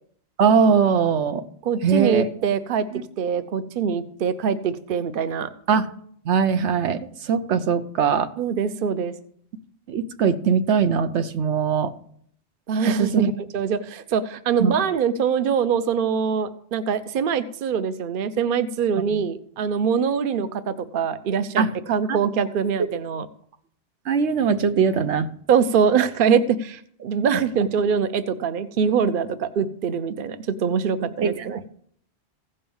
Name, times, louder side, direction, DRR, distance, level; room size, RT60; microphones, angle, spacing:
voice 1, 0.4-1.4 1.8-2.2 2.9-3.0 5.7-5.9 6.3-8.3 9.9-11.9 12.9-13.3 14.6-14.8 19.1-19.2 21.6-21.7 22.1-22.2 24.1-25.3 31.2-31.7, right 6 dB, 85° right, 10 dB, 1.1 m, -21 dB
voice 2, 1.6-2.9 3.2-5.5 8.4-9.1 12.7-23.3 25.5-31.7, right 6 dB, 55° right, 12 dB, 0.8 m, -23 dB
15.5 x 5.5 x 7.1 m, 0.63 s
omnidirectional pair, 1.1 m